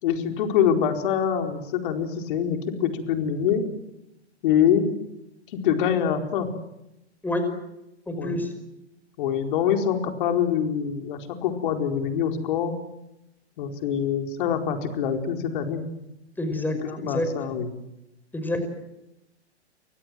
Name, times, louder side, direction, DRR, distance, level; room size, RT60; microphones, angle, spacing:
voice 1, 0.0-3.6 4.4-4.9 5.5-6.5 8.2-8.3 9.2-12.7 13.6-15.8 16.7-17.8, left 8 dB, 50° left, 5 dB, 4.6 m, -25 dB
voice 2, 8.1-8.5 16.4-17.3 18.3-18.7, left 1 dB, 5° left, 7 dB, 5.5 m, -27 dB
29.0 x 25.0 x 7.8 m, 0.90 s
hypercardioid pair, 120°, 34 cm